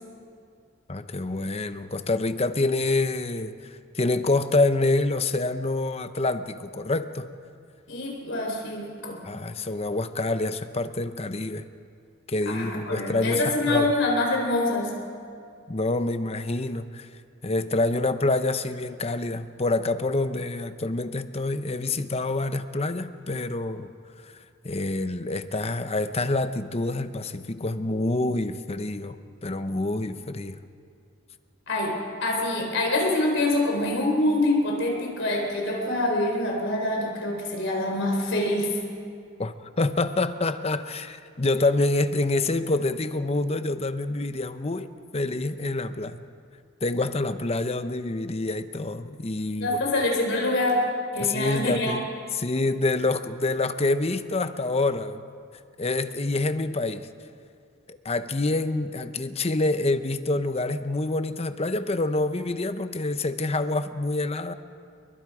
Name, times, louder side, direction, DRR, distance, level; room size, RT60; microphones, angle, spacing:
voice 1, 0.9-7.3 9.2-11.7 12.3-13.9 15.7-17.1 17.4-23.9 24.2-24.3 24.6-30.6 39.4-46.2 46.8-49.8 51.2-52.1 52.3-55.2 55.8-57.1 57.9-64.5, left 2 dB, 30° left, 10 dB, 0.8 m, -27 dB
voice 2, 7.9-9.2 12.5-14.9 31.7-38.8 49.5-52.0, left 1 dB, 65° left, 0 dB, 4.3 m, -25 dB
29.5 x 23.0 x 4.9 m, 2.3 s
head